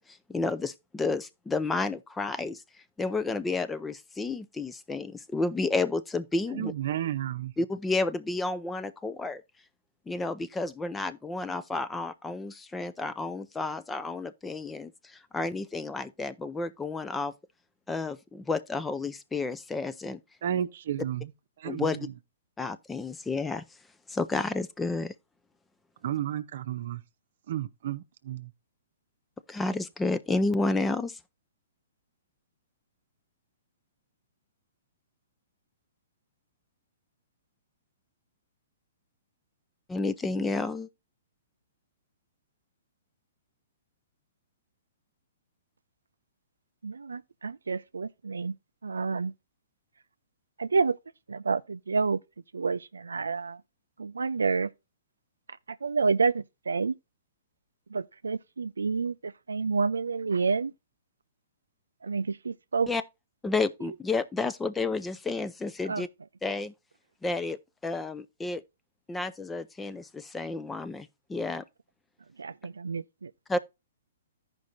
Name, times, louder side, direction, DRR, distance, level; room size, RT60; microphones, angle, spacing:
voice 1, 0.1-2.6 3.0-6.7 7.6-9.4 10.1-17.3 17.9-20.2 21.6-22.0 22.6-23.6 24.1-25.1 29.5-31.2 39.9-40.9 62.9-63.0 63.4-66.1 66.4-66.7 67.2-68.6 69.1-71.6 73.5-73.6, left 3 dB, 10° left, 0.4 m, -31 dB
voice 2, 6.5-7.5 20.4-21.3 21.6-22.0 26.0-27.0 27.5-28.5, right 11 dB, 60° right, 0.7 m, -32 dB
voice 3, 46.8-48.5 48.8-49.3 50.6-51.0 51.3-52.2 52.5-53.6 54.0-54.7 55.7-56.9 57.9-60.7 62.0-62.9 65.9-66.0 72.4-73.3, right 4 dB, 85° right, 0.3 m, -29 dB
14.5 x 5.2 x 2.6 m
hypercardioid pair, 125°, 0 cm